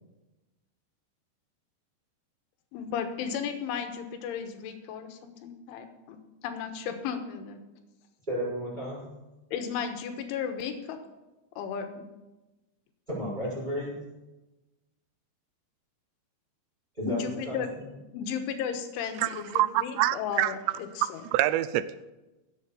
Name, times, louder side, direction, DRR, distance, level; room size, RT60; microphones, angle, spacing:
voice 1, 2.7-6.2 6.4-7.6 9.5-11.0 11.6-12.0 17.1-17.7 18.1-20.6 21.0-21.2, left 7 dB, 90° left, 6 dB, 3.7 m, -34 dB
voice 2, 8.3-9.0 13.1-14.0 17.0-17.6, equal, 10° right, -9 dB, 5.8 m, -32 dB
voice 3, 19.2-20.5 21.3-22.1, right 14 dB, 80° right, 15 dB, 2.6 m, -26 dB
16.5 x 8.6 x 7.0 m, 1.1 s
omnidirectional pair, 5.4 m